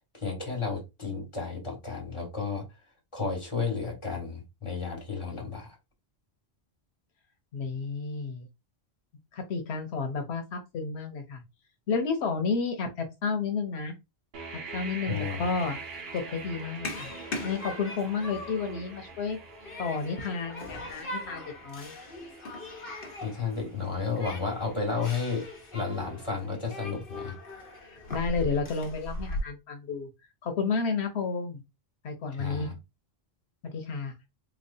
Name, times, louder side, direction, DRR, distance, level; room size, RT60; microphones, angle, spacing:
voice 1, 0.1-2.7 3.1-5.8 15.1-15.4 23.2-25.5 25.7-27.4 32.4-32.7, left 5 dB, 30° left, 1.8 m, -32 dB
voice 2, 7.5-8.5 9.3-11.4 11.9-14.0 14.7-15.8 16.1-17.1 17.4-19.4 19.8-21.9 27.8-30.1 30.4-31.6 32.0-32.7 33.6-34.1, left 4 dB, 85° left, 1.1 m, -31 dB
sound 1, 14.3-26.1, right 4 dB, 70° right, 1.0 m, -45 dB
Human group actions, 15.1-29.4, left 1 dB, 60° left, 1.2 m, -40 dB
3.6 x 3.1 x 2.6 m
omnidirectional pair, 1.1 m